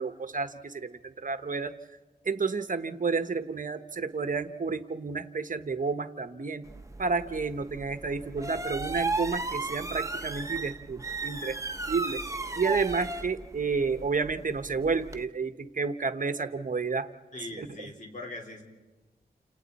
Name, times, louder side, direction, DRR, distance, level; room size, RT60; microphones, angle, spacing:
voice 1, 0.0-1.7 2.3-6.6 7.0-11.6 11.9-12.2 12.6-17.1 17.6-17.7, right 4 dB, 55° right, 10 dB, 1.0 m, -30 dB
sound 1, 6.7-15.2, right 3 dB, 20° right, 1.0 m, -35 dB
voice 2, 17.3-18.6, left 2 dB, 50° left, 2 dB, 4.2 m, -41 dB
29.5 x 27.0 x 4.2 m, 1.2 s
wide cardioid pair, 90°, 17 cm